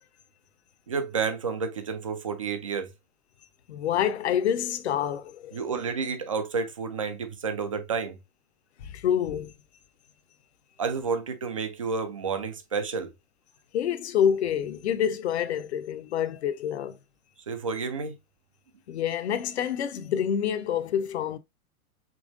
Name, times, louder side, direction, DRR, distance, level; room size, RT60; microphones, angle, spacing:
voice 1, 0.9-2.9 5.5-8.2 10.8-13.1 17.5-18.2, right 5 dB, 25° right, 0.3 m, -30 dB
voice 2, 3.7-5.6 8.8-9.5 13.7-17.0 18.9-21.4, left 9 dB, 50° left, 0.6 m, -27 dB
5.3 x 3.0 x 2.4 m
figure-of-eight pair, 110°, 44 cm